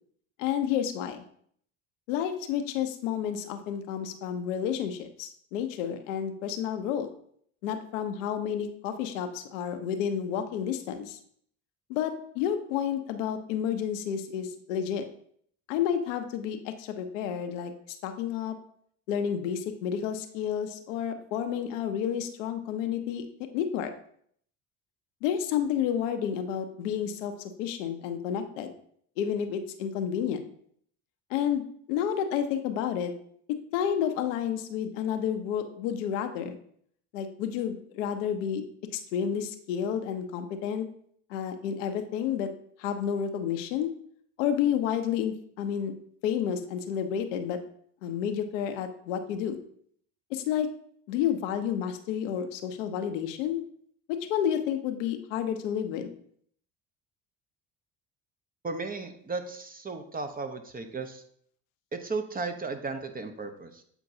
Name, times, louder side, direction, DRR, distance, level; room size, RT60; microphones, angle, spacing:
voice 1, 0.4-1.2 2.1-7.1 7.6-11.2 11.9-15.1 15.7-17.7 18.0-18.5 19.1-23.2 23.5-23.9 25.2-27.3 27.6-28.7 29.2-30.4 31.3-31.6 31.9-33.1 33.7-36.6 37.1-38.6 38.9-40.9 41.3-42.5 42.8-43.9 44.4-45.9 46.2-47.6 48.0-49.6 50.3-50.7 51.1-53.6 54.1-56.1, left 9 dB, 80° left, 7 dB, 0.7 m, -30 dB
voice 2, 58.6-61.2 61.9-63.8, right 3 dB, 25° right, 7 dB, 0.8 m, -35 dB
8.0 x 4.5 x 2.7 m, 0.63 s
hypercardioid pair, 65°, 38 cm